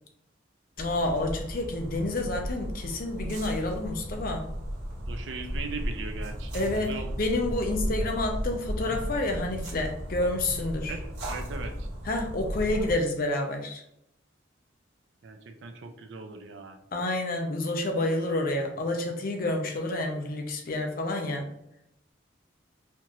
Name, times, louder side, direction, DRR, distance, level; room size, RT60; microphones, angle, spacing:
voice 1, 0.8-4.5 6.5-6.9 7.2-10.9 12.1-13.8 16.9-21.5, left 2 dB, 45° left, 3 dB, 0.6 m, -29 dB
sound 1, 0.8-12.9, equal, 80° right, 1.3 m, -35 dB
voice 2, 5.1-7.2 7.4-7.7 10.9-11.9 15.2-16.8, right 4 dB, 65° right, 6 dB, 0.5 m, -39 dB
4.3 x 2.5 x 2.9 m, 0.79 s
head